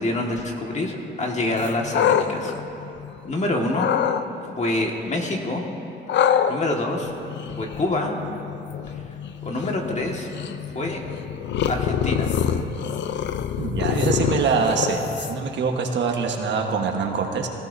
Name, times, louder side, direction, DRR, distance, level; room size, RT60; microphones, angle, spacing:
voice 1, 0.0-2.5 3.2-3.9 4.6-5.7 6.5-7.1 7.5-8.2 9.4-10.3 10.7-11.0 11.7-12.3, left 2 dB, 35° left, 1 dB, 1.8 m, -26 dB
sound 1, 1.6-3.3 3.7-4.2 6.1-15.6, left 8 dB, 65° left, 0.6 m, -26 dB
voice 2, 13.6-17.5, right 5 dB, 65° right, 3 dB, 1.4 m, -24 dB
18.5 x 16.5 x 2.7 m, 2.9 s
cardioid pair, 90°, 20 cm